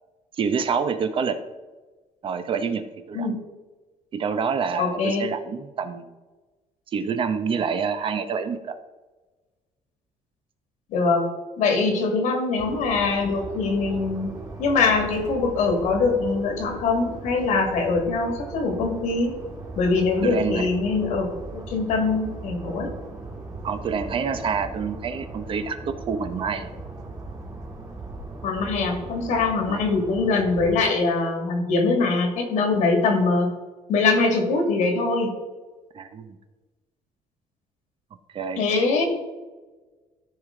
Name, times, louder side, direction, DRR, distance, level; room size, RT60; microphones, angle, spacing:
voice 1, 0.4-1.4 2.2-3.3 4.1-6.0 6.9-8.8 11.7-11.9 20.2-20.7 23.6-26.7 29.7-29.8 35.9-36.4 38.3-38.6, right 6 dB, 45° right, 10 dB, 0.7 m, -27 dB
voice 2, 4.8-5.2 10.9-11.2 11.6-14.3 14.6-19.3 19.8-22.9 28.4-33.5 33.9-35.3 38.6-39.1, left 3 dB, 75° left, 3 dB, 2.2 m, -23 dB
sound 1, 12.6-30.9, right 2 dB, 25° right, 2.0 m, -38 dB
13.5 x 4.9 x 3.8 m, 1.2 s
cardioid pair, 130°, 13 cm